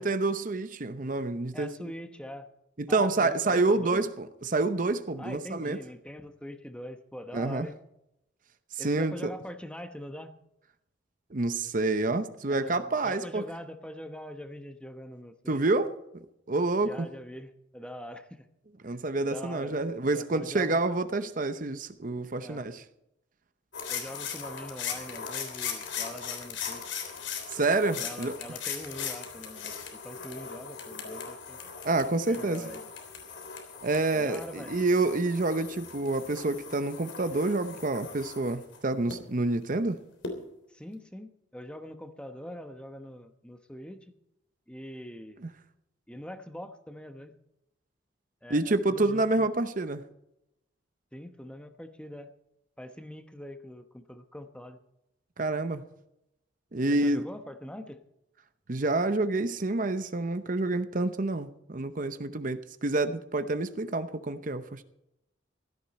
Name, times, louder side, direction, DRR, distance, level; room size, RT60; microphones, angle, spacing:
voice 1, 0.0-1.9 2.8-5.8 7.3-7.7 8.7-9.3 11.3-13.4 15.5-15.9 16.5-17.1 18.8-22.8 27.5-28.4 31.8-32.7 33.8-40.0 48.5-50.0 55.4-55.8 56.7-57.2 58.7-64.8, right 2 dB, 45° right, 0.8 m, -28 dB
voice 2, 1.5-2.5 2.9-4.0 5.2-7.8 8.8-10.3 12.5-15.6 16.8-18.5 18.9-19.0 19.3-20.8 22.4-22.7 23.9-26.8 28.0-31.6 32.2-32.9 34.1-34.8 40.7-44.2 44.7-45.4 46.1-47.3 48.4-49.5 51.1-52.3 52.8-54.8 56.9-58.0, equal, 5° left, 1.0 m, -43 dB
sound 1, 23.7-39.1 40.2-40.3, left 6 dB, 80° left, 3.4 m, -39 dB
16.0 x 14.0 x 4.3 m
head